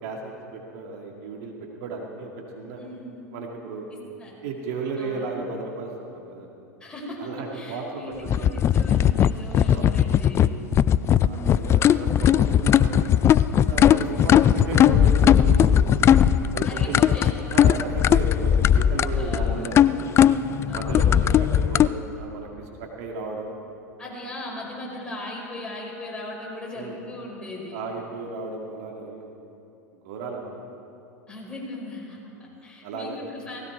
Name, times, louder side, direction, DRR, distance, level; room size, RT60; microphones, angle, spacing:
voice 1, 0.0-2.8 3.3-3.9 4.4-6.5 7.2-8.7 9.7-9.9 10.9-13.1 13.6-16.1 16.5-17.0 17.4-19.8 20.7-23.5 26.7-27.0 27.7-29.3 30.0-30.4 32.8-33.2, right 4 dB, 55° right, 0 dB, 2.1 m, -34 dB
voice 2, 2.8-3.2 4.2-4.3 5.0-5.2 6.8-8.1 8.4-10.5 11.1-11.7 16.6-17.3 19.1-19.7 20.7-21.3 24.0-27.8 31.3-32.2 32.6-33.6, left 1 dB, 10° left, -3 dB, 5.0 m, -38 dB
sound 1, 8.3-21.9, left 9 dB, 30° left, 0.4 m, -18 dB
18.0 x 16.0 x 4.8 m, 2.7 s
figure-of-eight pair, 90°, 9 cm